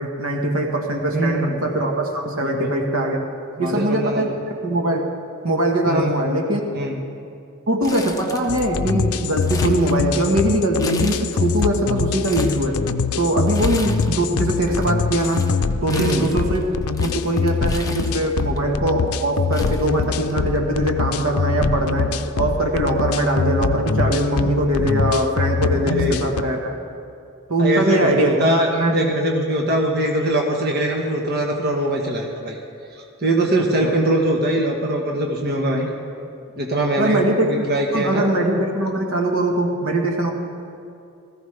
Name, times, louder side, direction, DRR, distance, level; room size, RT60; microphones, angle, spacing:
voice 1, 0.0-3.3 3.6-4.3 4.6-5.0 5.4-6.6 7.7-12.8 13.2-15.5 15.8-16.7 17.0-26.8 27.5-28.3 28.7-28.9 33.8-33.9 37.0-37.7 37.9-40.3, right 1 dB, 70° right, 2 dB, 1.4 m, -21 dB
voice 2, 1.1-1.6 2.4-2.7 3.6-4.3 5.8-6.1 6.7-7.0 15.9-16.2 25.8-26.3 27.6-32.6 32.9-35.9 36.6-38.2, right 1 dB, 50° right, 0 dB, 1.3 m, -22 dB
Crumpling crinkling, 7.8-8.8 9.1-10.4 10.8-11.6 12.0-12.6 13.5-14.3 14.5-18.6 19.2-19.3 19.5-20.6 20.9-21.0 21.9-22.2, left 3 dB, 15° left, 0.8 m, -35 dB
sound 1, 8.5-26.4, left 5 dB, 90° left, 0.5 m, -23 dB
18.0 x 14.5 x 3.4 m, 2.5 s
head